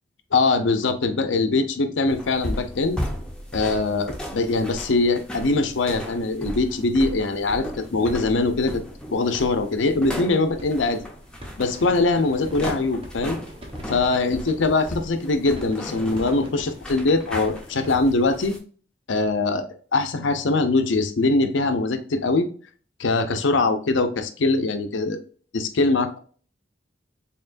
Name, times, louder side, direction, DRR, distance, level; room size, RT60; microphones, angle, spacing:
voice 1, 0.3-3.0 3.5-8.8 9.1-11.1 11.6-13.4 13.9-18.6 19.1-22.5 23.0-25.2 25.5-26.2, left 3 dB, 85° left, 8 dB, 0.6 m, -22 dB
sound 1, 2.1-18.6, equal, 5° left, 0.7 m, -36 dB
sound 2, 10.5-18.0, equal, 30° right, 0.9 m, -43 dB
4.4 x 3.6 x 2.5 m, 0.43 s
head